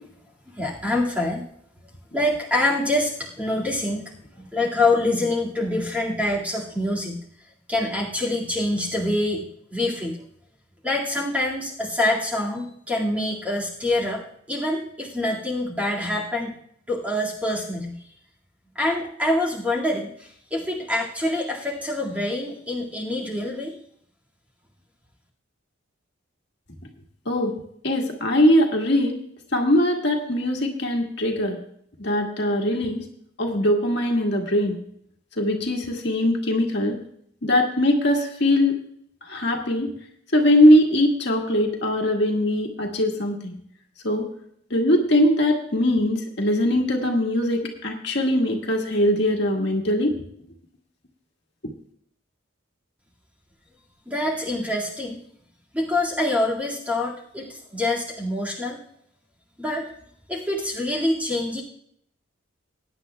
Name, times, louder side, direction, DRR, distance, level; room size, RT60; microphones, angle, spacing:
voice 1, 0.6-1.4 2.1-4.1 4.4-7.2 7.7-9.4 9.7-10.2 10.8-14.2 14.5-16.5 16.9-18.1 18.8-23.7 54.1-55.2 55.7-58.8 59.6-59.9 60.3-61.6, left 1 dB, 5° right, -4 dB, 2.1 m, -25 dB
voice 2, 27.8-29.2 29.5-31.6 32.0-33.0 33.4-34.8 35.4-37.0 37.4-38.7 39.3-39.9 40.3-43.6 44.0-44.3 44.7-50.1, left 1 dB, 55° left, 1 dB, 1.8 m, -21 dB
21.0 x 10.0 x 2.3 m, 0.69 s
head